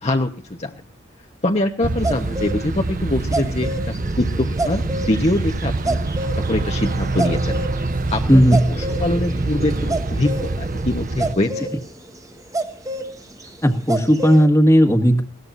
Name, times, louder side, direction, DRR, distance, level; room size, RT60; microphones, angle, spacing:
voice 1, 0.0-0.3 0.6-0.7 1.4-6.0 6.4-7.6 8.1-8.4 8.7-11.5, left 1 dB, 30° left, 2 dB, 1.2 m, -23 dB
sound 1, 1.8-11.3, right 2 dB, 40° right, 0.8 m, -25 dB
sound 2, 2.0-2.6 3.0-11.8 12.5-13.1 13.4-13.5 13.9-14.4, right 2 dB, 15° right, 1.5 m, -28 dB
voice 2, 8.3-8.8 13.6-15.2, equal, 15° left, 8 dB, 1.7 m, -14 dB
21.0 x 18.0 x 2.7 m, 0.38 s
head